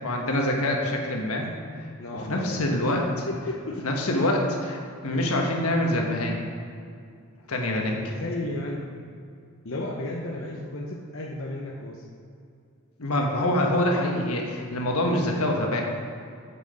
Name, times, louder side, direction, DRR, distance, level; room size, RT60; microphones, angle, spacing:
voice 1, 0.0-1.5 1.8-3.3 3.8-6.4 7.5-8.2 13.0-15.8, left 1 dB, 85° left, 1 dB, 1.3 m, -25 dB
voice 2, 2.0-2.7 3.3-3.8 7.9-8.9 9.6-12.0, left 2 dB, 65° left, -2 dB, 0.8 m, -33 dB
7.7 x 6.6 x 5.2 m, 2.4 s
head